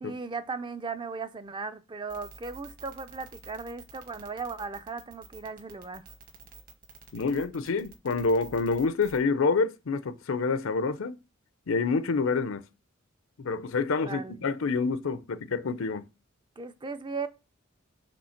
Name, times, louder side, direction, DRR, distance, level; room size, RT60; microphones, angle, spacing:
voice 1, 0.0-6.0 14.0-14.5 16.6-17.3, right 4 dB, 25° right, 0.4 m, -37 dB
sound 1, 2.1-9.2, right 4 dB, 45° right, 1.3 m, -49 dB
voice 2, 7.1-11.2 11.7-12.6 13.4-16.0, left 4 dB, 80° left, 0.6 m, -27 dB
5.2 x 3.6 x 5.7 m
head